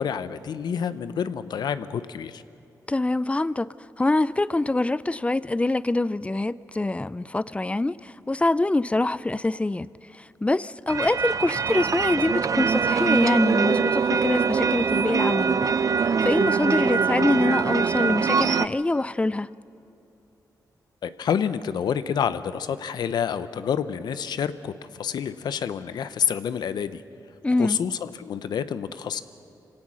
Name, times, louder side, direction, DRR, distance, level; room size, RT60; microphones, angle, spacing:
voice 1, 0.0-2.4 21.0-27.0 27.6-29.2, left 8 dB, 85° left, 13 dB, 0.8 m, -28 dB
voice 2, 2.9-3.7 4.0-9.9 10.1-15.7 16.0-19.5 27.4-27.8, left 2 dB, 15° left, 18 dB, 0.4 m, -25 dB
sound 1, 10.9-18.7, right 5 dB, 55° right, 0.5 m, -23 dB
25.5 x 17.5 x 6.3 m, 2.7 s
cardioid pair, 70°, 7 cm